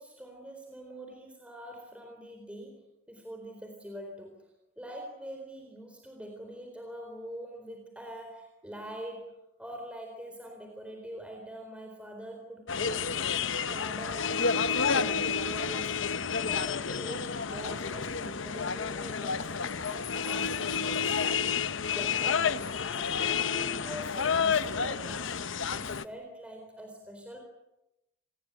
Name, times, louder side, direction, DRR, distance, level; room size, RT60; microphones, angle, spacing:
voice 1, 0.0-4.4 4.8-9.3 9.6-19.5 19.9-21.7 21.9-27.4, equal, 5° right, 2 dB, 4.1 m, -44 dB
sound 1, 12.7-26.0, left 6 dB, 75° left, 0.9 m, -30 dB
27.0 x 20.5 x 8.3 m, 0.90 s
head